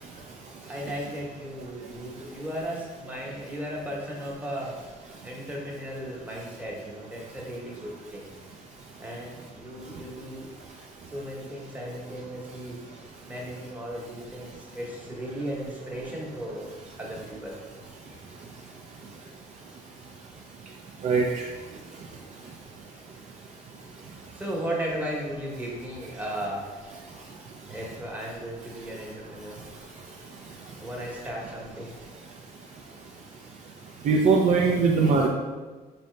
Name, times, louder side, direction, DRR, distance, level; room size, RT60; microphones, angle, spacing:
voice 1, 0.6-4.7 5.2-8.3 9.0-10.5 11.1-12.8 13.3-16.7 17.0-17.8 18.1-18.2 24.3-26.7 27.7-29.6 30.8-32.0, equal, 10° right, -3 dB, 1.0 m, -36 dB
voice 2, 21.0-21.4 34.0-35.3, right 4 dB, 45° right, 0 dB, 0.4 m, -21 dB
4.1 x 2.7 x 3.3 m, 1.3 s
cardioid pair, 110°, 17 cm